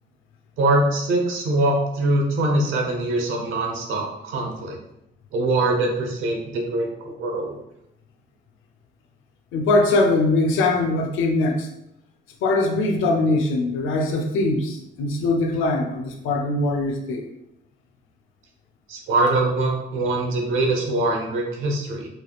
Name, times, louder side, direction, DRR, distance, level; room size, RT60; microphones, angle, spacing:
voice 1, 0.6-4.8 5.3-7.6 18.9-22.1, right 2 dB, 85° right, 1 dB, 0.9 m, -23 dB
voice 2, 9.5-11.7 12.4-17.2, left 2 dB, 85° left, 3 dB, 0.7 m, -21 dB
4.7 x 3.0 x 2.4 m, 0.83 s
cardioid pair, 90°, 20 cm